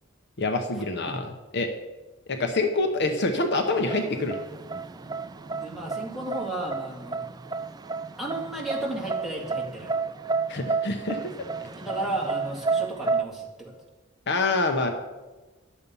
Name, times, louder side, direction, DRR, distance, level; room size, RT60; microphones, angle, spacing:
voice 1, 0.4-1.3 1.5-1.7 2.3-4.4 10.5-11.3 14.3-14.9, left 2 dB, 55° left, 5 dB, 0.9 m, -26 dB
sound 1, 3.6-13.2, right 4 dB, 20° right, 0.3 m, -31 dB
voice 2, 5.6-7.2 8.2-9.9 11.7-13.8, right 1 dB, ahead, -3 dB, 2.1 m, -33 dB
11.0 x 7.0 x 5.4 m, 1.2 s
head